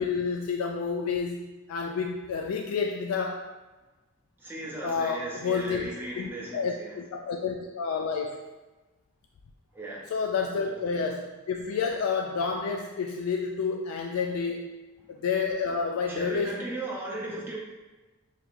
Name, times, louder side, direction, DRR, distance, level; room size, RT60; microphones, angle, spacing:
voice 1, 0.0-3.5 4.8-5.9 6.2-8.4 10.1-14.8 15.2-16.5, left 5 dB, 90° left, 2 dB, 0.3 m, -29 dB
voice 2, 4.4-7.0 9.7-10.1 10.6-10.7 15.1-15.2 16.1-17.6, right 2 dB, 10° right, -5 dB, 0.6 m, -37 dB
4.7 x 3.0 x 2.5 m, 1.1 s
head